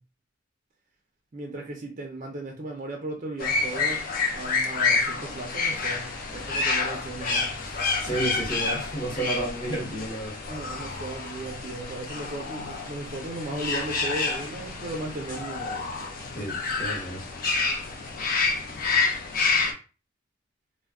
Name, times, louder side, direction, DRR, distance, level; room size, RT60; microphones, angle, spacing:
voice 1, 1.3-4.0 4.3-8.2 10.5-15.9, right 2 dB, 40° right, 1 dB, 0.4 m, -36 dB
sound 1, 3.4-19.7, left 4 dB, 45° left, 0.5 m, -28 dB
voice 2, 8.0-10.3 16.3-17.2, right 2 dB, 25° left, -5 dB, 0.8 m, -31 dB
2.2 x 2.1 x 3.5 m, 0.34 s
head